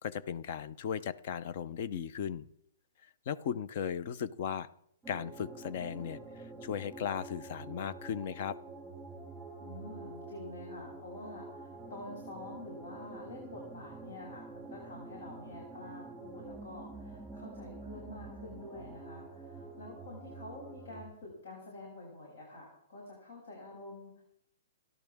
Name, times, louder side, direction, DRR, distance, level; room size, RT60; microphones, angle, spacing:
voice 1, 0.0-2.5 3.3-4.7 5.1-6.2 6.6-8.6, left 8 dB, 45° left, 15 dB, 0.7 m, -36 dB
sound 1, 5.0-21.0, right 3 dB, 5° right, 2.5 m, -47 dB
voice 2, 9.6-24.2, left 2 dB, 70° left, -3 dB, 7.6 m, -48 dB
30.0 x 12.0 x 3.6 m, 0.75 s
hypercardioid pair, 165°, 0 cm